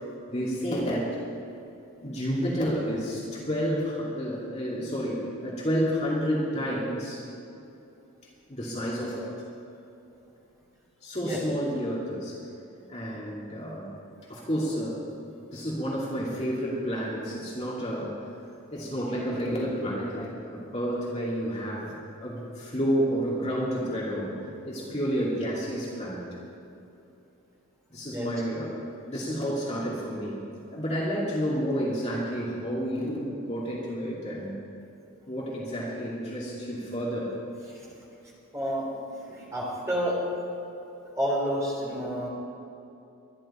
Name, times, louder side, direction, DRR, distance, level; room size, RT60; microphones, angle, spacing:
voice 1, 0.3-1.2 2.0-7.3 8.5-9.3 11.0-12.4 12.9-14.0 14.3-15.1 15.5-18.3 18.7-24.3 24.6-26.3 27.9-30.4 30.7-34.6 35.3-37.4, equal, 30° left, -5 dB, 2.5 m, -30 dB
voice 2, 38.5-38.9 39.3-40.2 41.2-42.3, equal, 15° right, -5 dB, 3.7 m, -29 dB
23.0 x 11.5 x 4.4 m, 2.8 s
head